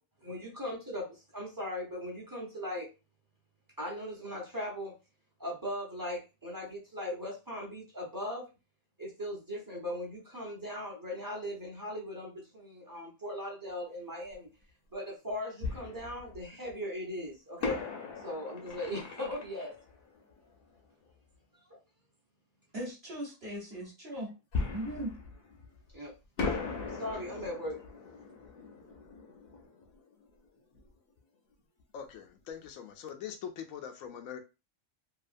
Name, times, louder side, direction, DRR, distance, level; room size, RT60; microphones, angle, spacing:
voice 1, 0.2-2.9 3.8-4.9 5.4-8.5 9.0-14.5 14.9-17.8 18.2-19.7 21.7-21.8 25.9-26.1 26.5-26.6 27.0-27.8, left 1 dB, 20° right, -2 dB, 0.7 m, -39 dB
Fireworks, 14.3-14.4 15.6-16.7 17.6-21.1 24.5-26.0 26.4-30.9 31.2-31.3 31.8-32.0, left 4 dB, 55° left, 0.7 m, -39 dB
voice 2, 22.7-24.3 24.6-25.1, right 1 dB, 50° right, -5 dB, 1.1 m, -39 dB
voice 3, 31.9-34.4, left 8 dB, 85° left, 6 dB, 1.0 m, -42 dB
2.8 x 2.4 x 2.5 m, 0.28 s
omnidirectional pair, 1.4 m